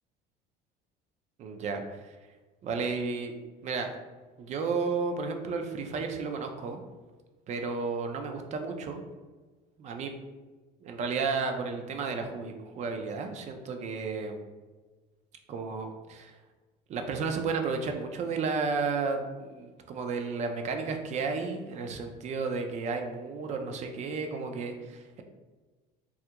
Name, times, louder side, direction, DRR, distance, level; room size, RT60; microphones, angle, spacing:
voice 1, 1.4-2.1 2.6-3.3 3.6-4.0 4.4-6.8 7.5-9.0 9.8-10.2 10.8-14.4 15.5-16.3 16.9-25.2, right 4 dB, 40° right, 5 dB, 0.4 m, -33 dB
3.3 x 2.4 x 2.9 m, 1.3 s
cardioid pair, 140°, 18 cm